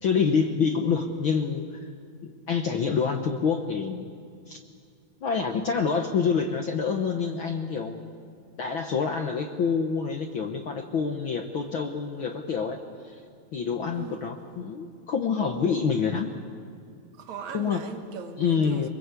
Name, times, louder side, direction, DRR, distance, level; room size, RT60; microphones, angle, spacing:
voice 1, 0.0-1.9 2.2-4.0 4.5-4.6 5.2-8.0 8.6-12.8 13.0-13.2 13.5-16.3 17.5-17.8 18.4-18.9, left 6 dB, 60° left, 1.4 m, -27 dB
voice 2, 17.1-18.9, right 7 dB, 70° right, 2.6 m, -39 dB
24.0 x 23.0 x 8.3 m
omnidirectional pair, 3.5 m